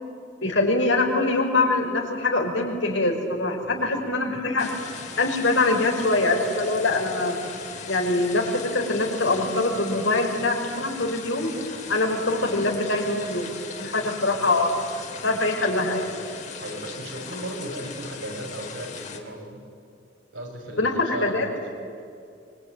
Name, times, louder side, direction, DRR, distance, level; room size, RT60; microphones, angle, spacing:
voice 1, 0.4-4.8 5.2-7.4 7.9-11.5 11.9-13.5 13.8-14.7 15.2-16.2 20.8-21.5, left 2 dB, 85° left, 2 dB, 5.5 m, -23 dB
voice 2, 3.6-4.0 16.6-19.6 20.3-21.4 21.7-21.8, right 1 dB, 90° right, 1 dB, 6.4 m, -36 dB
sound 1, 4.6-19.2, left 5 dB, 40° left, 2.8 m, -39 dB
24.5 x 23.5 x 9.4 m, 2.5 s
head